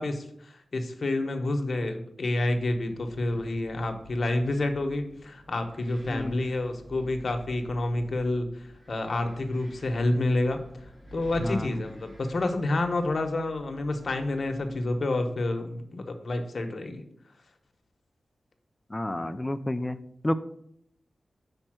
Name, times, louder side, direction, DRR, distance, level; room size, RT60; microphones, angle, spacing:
voice 1, 0.0-8.5 8.9-10.6 11.1-17.0, left 2 dB, 55° left, 6 dB, 0.9 m, -29 dB
Wind, 2.4-15.0, equal, 25° right, 2.4 m, -50 dB
voice 2, 11.4-11.8 18.9-20.0 20.2-20.3, left 1 dB, 15° left, 11 dB, 0.4 m, -30 dB
5.5 x 4.3 x 6.1 m, 0.71 s
wide cardioid pair, 80°, 0 cm